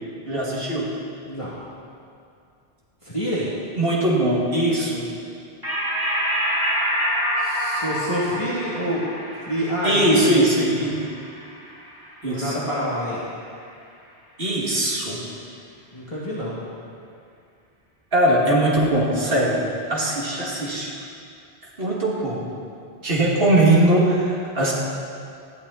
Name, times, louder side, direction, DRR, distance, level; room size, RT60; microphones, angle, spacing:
voice 1, 0.3-0.9 3.8-5.1 9.8-10.9 12.2-12.6 14.4-15.2 18.1-19.6 19.9-20.9 21.8-22.4 23.0-24.7, right 1 dB, 60° right, -5 dB, 2.8 m, -20 dB
voice 2, 3.0-3.5 7.4-9.0 9.5-10.5 10.9-11.0 12.2-13.2 15.9-16.6, equal, 30° left, -8 dB, 2.6 m, -27 dB
sound 1, 5.6-12.5, equal, 20° right, 3.3 m, -27 dB
20.5 x 14.0 x 4.3 m, 2.4 s
omnidirectional pair, 1.1 m